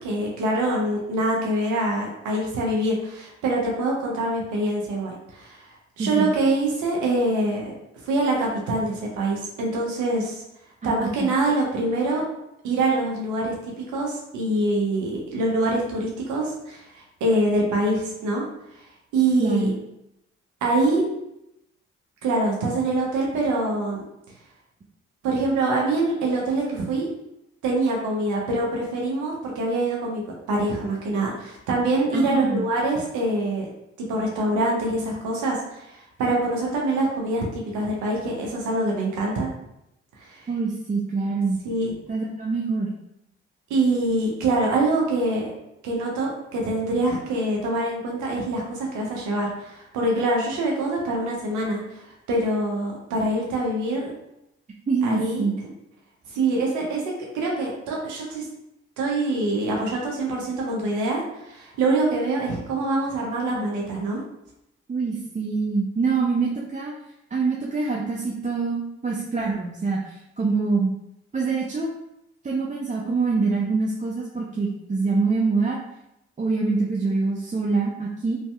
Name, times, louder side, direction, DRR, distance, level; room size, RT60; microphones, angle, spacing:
voice 1, 0.0-5.6 6.0-7.7 8.0-10.4 10.8-12.2 12.6-18.5 19.1-19.7 20.6-21.0 22.2-24.0 25.2-27.1 27.6-30.2 30.5-33.7 34.1-39.5 40.2-40.4 41.6-41.9 43.7-45.5 45.8-54.1 55.0-55.4 56.3-57.0 57.3-58.5 59.0-64.2, right 2 dB, 80° right, -2 dB, 0.7 m, -24 dB
voice 2, 6.0-6.3 10.8-11.3 19.4-19.7 32.1-32.7 40.5-41.6 42.1-42.9 54.9-55.5 64.9-66.9 67.3-70.9 71.3-71.9 72.4-75.8 76.4-78.4, right 4 dB, 25° right, -2 dB, 0.5 m, -25 dB
3.1 x 2.7 x 2.2 m, 0.84 s
hypercardioid pair, 45°, 30 cm